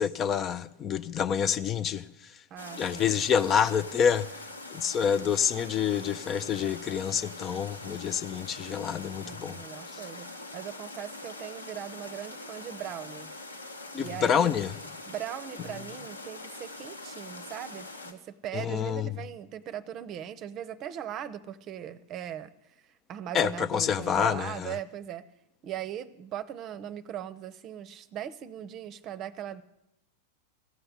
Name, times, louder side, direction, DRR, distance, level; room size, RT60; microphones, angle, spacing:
voice 1, 0.0-2.1 2.8-4.3 4.7-9.6 9.9-10.0 13.9-14.7 18.5-19.1 23.3-24.7, left 7 dB, 30° left, 0.5 m, -27 dB
voice 2, 2.5-3.8 9.2-13.3 14.0-14.5 15.1-22.5 23.1-25.3 25.6-29.6, right 10 dB, 35° right, 0.7 m, -39 dB
sound 1, 2.6-18.1, left 2 dB, 85° left, 1.4 m, -43 dB
15.5 x 7.8 x 9.8 m
figure-of-eight pair, 90°, 0 cm